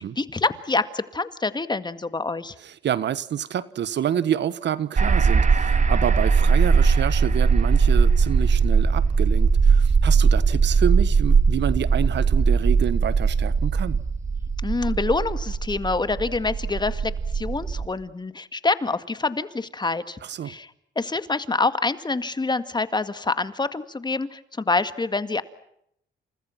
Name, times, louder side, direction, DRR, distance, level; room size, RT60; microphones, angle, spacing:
voice 1, 0.0-2.5 14.6-20.2 20.4-20.7 21.0-25.4, left 3 dB, 20° left, 2.0 m, -26 dB
voice 2, 2.6-14.0 20.2-20.5, right 9 dB, 65° right, 1.4 m, -28 dB
sound 1, 5.0-17.9, right 5 dB, 40° right, 2.1 m, -20 dB
29.5 x 27.5 x 5.9 m
cardioid pair, 90°, 20 cm